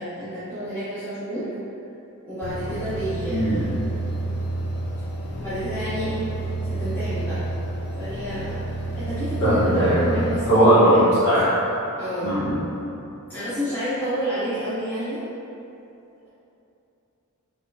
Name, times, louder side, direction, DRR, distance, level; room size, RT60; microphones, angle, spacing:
voice 1, 0.0-1.5 2.2-3.9 5.4-7.4 7.9-8.6 9.0-11.1 11.9-12.4 13.3-15.2, equal, 10° left, -16 dB, 0.9 m, -29 dB
sound 1, 2.4-10.4, right 2 dB, 50° left, 0.4 m, -29 dB
voice 2, 9.4-10.1 10.4-11.0 11.2-11.5 12.2-12.6, right 1 dB, 70° left, -15 dB, 1.2 m, -18 dB
5.0 x 3.3 x 2.7 m, 2.8 s
head